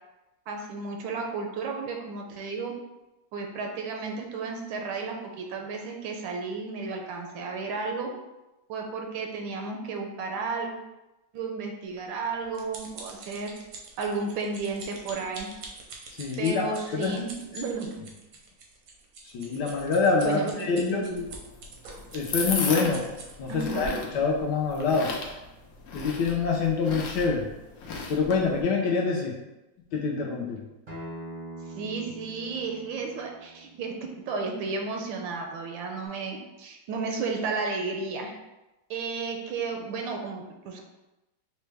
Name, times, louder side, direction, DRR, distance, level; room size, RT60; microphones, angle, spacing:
voice 1, 0.5-2.7 3.3-8.1 8.7-10.7 11.3-13.5 14.0-15.5 16.4-18.0 20.2-21.3 23.5-24.0 31.7-38.3 38.9-40.8, right 4 dB, 85° right, 2 dB, 1.4 m, -33 dB
sound 1, 12.0-23.6 24.3-24.5 24.8-24.9, right 3 dB, 65° right, 0.9 m, -45 dB
voice 2, 16.2-17.2 19.3-21.0 22.1-23.1 23.4-25.1 25.9-27.5 28.1-29.4 29.9-30.6, left 4 dB, 70° left, -1 dB, 1.1 m, -26 dB
sound 2, 21.1-28.6, left 4 dB, 90° left, 0.7 m, -35 dB
Acoustic guitar, 30.9-36.1, right 1 dB, 40° right, 0.5 m, -45 dB
5.1 x 2.2 x 3.3 m, 1.0 s
omnidirectional pair, 2.1 m